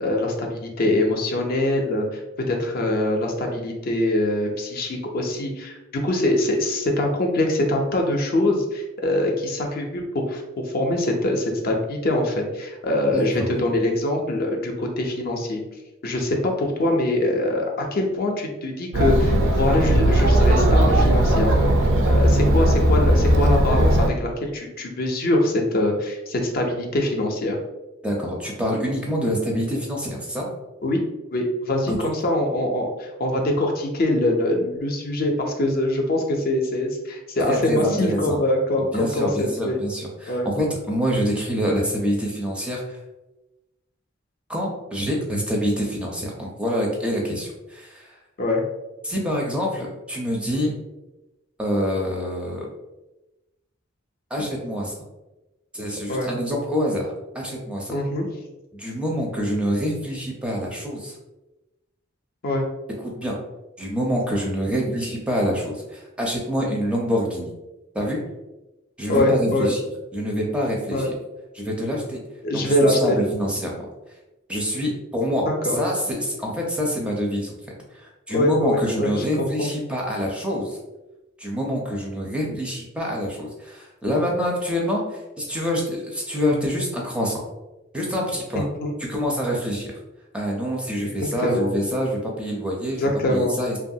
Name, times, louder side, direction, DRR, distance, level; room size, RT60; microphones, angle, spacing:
voice 1, 0.0-15.6 16.0-17.6 17.9-21.7 22.0-27.6 30.8-31.0 31.3-39.8 40.3-40.5 48.4-48.6 56.1-56.3 57.9-58.3 62.4-62.6 69.1-69.7 70.9-71.1 72.4-73.2 75.5-75.8 78.3-79.7 88.6-88.9 91.1-91.7 93.0-93.5, left 1 dB, 50° left, 1 dB, 0.5 m, -23 dB
voice 2, 13.1-13.5 28.0-30.5 31.9-32.1 37.5-38.4 38.8-43.0 44.5-48.1 49.0-50.8 51.6-52.7 54.3-54.9 55.7-58.0 58.7-61.2 63.0-63.4 63.8-67.5 67.9-68.2 69.0-69.8 70.1-71.1 71.5-72.2 72.5-73.9 74.5-75.5 75.7-77.5 77.9-80.8 81.4-87.4 87.9-88.7 89.1-89.9 90.3-93.8, equal, 5° right, -2 dB, 0.4 m, -26 dB
Chatter, 18.9-24.1, right 1 dB, 70° right, 0.4 m, -18 dB
2.8 x 2.3 x 2.6 m, 1.0 s
head